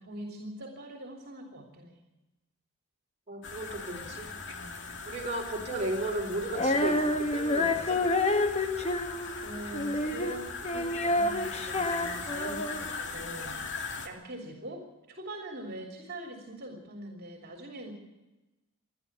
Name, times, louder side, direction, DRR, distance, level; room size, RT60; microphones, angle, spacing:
voice 1, 0.0-2.0 4.4-4.9 9.4-17.9, right 1 dB, 45° right, 2 dB, 3.3 m, -43 dB
voice 2, 3.3-4.3 5.1-8.0, right 2 dB, 30° right, -1 dB, 4.1 m, -34 dB
sound 1, 3.4-14.1, left 4 dB, 55° left, 2.4 m, -40 dB
Female singing, 6.5-12.9, left 2 dB, 30° left, 1.3 m, -29 dB
28.0 x 11.5 x 8.1 m, 1.1 s
head